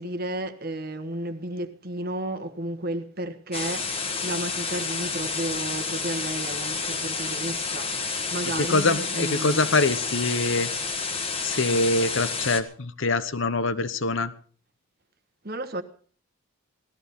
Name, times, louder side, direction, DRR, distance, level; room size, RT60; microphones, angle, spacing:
voice 1, 0.0-9.6 15.4-15.8, right 1 dB, 45° right, 1.3 m, -33 dB
sound 1, 3.5-12.6, left 4 dB, 25° left, 1.5 m, -30 dB
voice 2, 8.6-10.7 11.4-14.3, left 3 dB, 60° left, 1.0 m, -24 dB
17.5 x 14.0 x 5.4 m
head